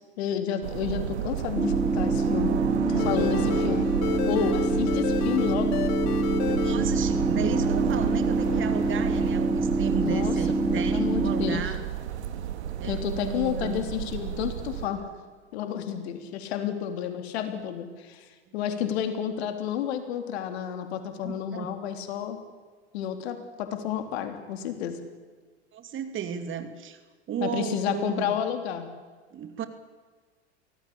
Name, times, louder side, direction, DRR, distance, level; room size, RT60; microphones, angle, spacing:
voice 1, 0.2-2.5 2.9-3.9 4.3-5.8 9.9-11.7 12.8-15.0 15.5-18.2 18.5-22.4 22.9-25.0 27.4-28.9, left 9 dB, 65° left, 8 dB, 3.4 m, -31 dB
sound 1, 0.6-14.9, right 10 dB, 75° right, 2.1 m, -31 dB
sound 2, 1.6-11.6, right 2 dB, 5° right, 0.9 m, -26 dB
sound 3, 2.9-8.2 8.4-9.3, left 11 dB, 50° left, 2.5 m, -33 dB
voice 2, 6.4-11.8 12.8-13.9 21.2-21.7 25.7-27.0 27.3-28.4 29.3-29.7, right 8 dB, 35° right, 9 dB, 2.8 m, -34 dB
24.0 x 18.0 x 8.6 m, 1.5 s
hypercardioid pair, 90°, 34 cm